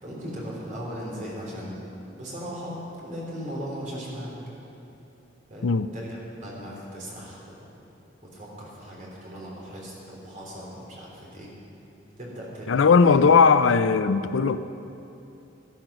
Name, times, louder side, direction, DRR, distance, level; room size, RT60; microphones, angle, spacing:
voice 1, 0.0-1.8 2.1-4.3 5.5-7.6 8.3-11.5 12.2-13.2 13.7-13.8, equal, 40° right, -4 dB, 3.4 m, -38 dB
voice 2, 12.7-14.6, left 5 dB, 90° left, 13 dB, 0.5 m, -18 dB
12.5 x 12.0 x 6.1 m, 2.9 s
head